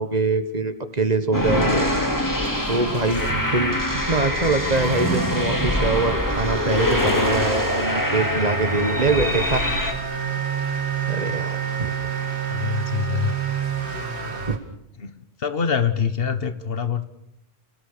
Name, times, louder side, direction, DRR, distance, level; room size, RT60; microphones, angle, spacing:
voice 1, 0.0-1.9 2.7-3.2 3.5-9.6 11.1-11.9, right 3 dB, 40° right, 10 dB, 1.6 m, -23 dB
sound 1, 1.3-9.9, left 1 dB, 20° left, 2.5 m, -24 dB
Motor vehicle (road) / Accelerating revving vroom, 2.0-14.6, right 7 dB, 85° right, 2.6 m, -31 dB
Wind instrument woodwind instrument, 3.1-14.6, right 4 dB, 60° right, 1.2 m, -33 dB
voice 2, 12.5-13.4 15.0-15.1 15.4-17.0, left 7 dB, 65° left, 12 dB, 1.6 m, -24 dB
29.0 x 18.0 x 6.8 m, 0.79 s
omnidirectional pair, 1.1 m